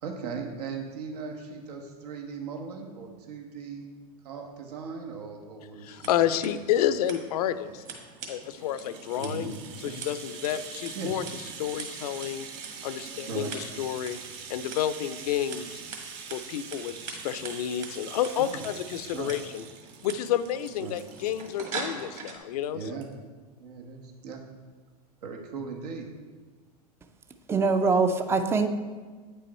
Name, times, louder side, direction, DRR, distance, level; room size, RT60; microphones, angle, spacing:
voice 1, 0.0-3.9 4.2-6.3 9.1-9.5 9.8-10.0 10.9-11.1 13.3-13.6 18.4-18.7 19.1-19.5 20.8-21.0 22.7-23.1 23.6-24.4 25.2-26.1, right 5 dB, 75° right, 1 dB, 1.3 m, -38 dB
voice 2, 5.8-7.8 8.3-9.5 9.8-11.2 11.6-12.5 12.8-14.2 14.5-15.8 16.3-19.6 20.0-22.8, left 10 dB, 70° left, 13 dB, 0.5 m, -30 dB
Scissors, 5.8-22.4, right 4 dB, 35° right, 1.7 m, -44 dB
Rattle (instrument), 8.2-22.3 22.6-22.7 23.0-23.1, right 6 dB, 55° right, 1.0 m, -44 dB
voice 3, 27.5-28.7, right 4 dB, 10° right, 8 dB, 0.4 m, -23 dB
8.8 x 5.6 x 4.2 m, 1.4 s
hypercardioid pair, 115°, 20 cm